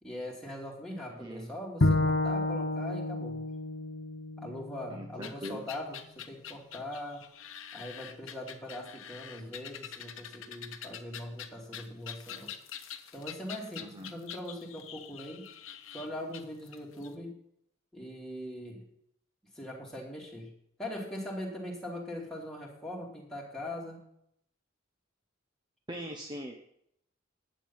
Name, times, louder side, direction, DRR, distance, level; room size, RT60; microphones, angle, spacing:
voice 1, 0.0-3.4 4.4-7.2 7.7-12.5 13.1-15.4 15.9-17.3 17.9-18.8 19.5-20.5 20.8-24.0, left 1 dB, 5° left, -4 dB, 2.8 m, -41 dB
voice 2, 1.1-1.5 4.9-5.6 13.8-14.1 25.9-26.5, equal, 20° right, 2 dB, 1.0 m, -41 dB
Bowed string instrument, 1.8-5.1, left 2 dB, 55° left, 0.8 m, -30 dB
sound 1, 5.2-17.1, left 9 dB, 80° left, 1.0 m, -45 dB
11.0 x 8.8 x 5.6 m, 0.72 s
head